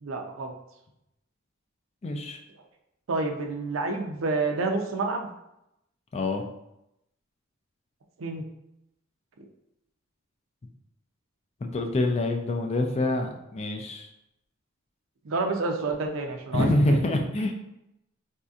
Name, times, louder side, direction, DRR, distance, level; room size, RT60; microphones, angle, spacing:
voice 1, 0.0-0.5 3.1-5.3 8.2-8.4 15.2-17.0, right 3 dB, 75° right, 3 dB, 0.5 m, -29 dB
voice 2, 2.0-2.4 6.1-6.4 11.6-14.1 16.5-17.5, left 1 dB, 30° left, 3 dB, 0.4 m, -26 dB
4.2 x 2.7 x 2.4 m, 0.85 s
head